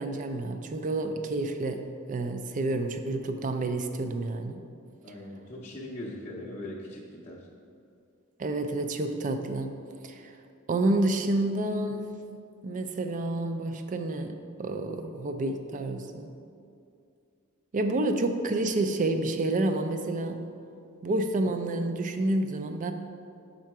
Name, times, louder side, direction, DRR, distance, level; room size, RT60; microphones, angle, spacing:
voice 1, 0.0-1.8 2.1-4.6 8.4-9.7 10.0-10.3 10.7-12.1 12.6-16.3 17.7-20.4 21.0-22.9, right 2 dB, 35° right, 7 dB, 0.4 m, -29 dB
voice 2, 5.0-7.4, left 1 dB, 30° left, -6 dB, 0.6 m, -40 dB
6.4 x 3.8 x 4.6 m, 2.4 s
head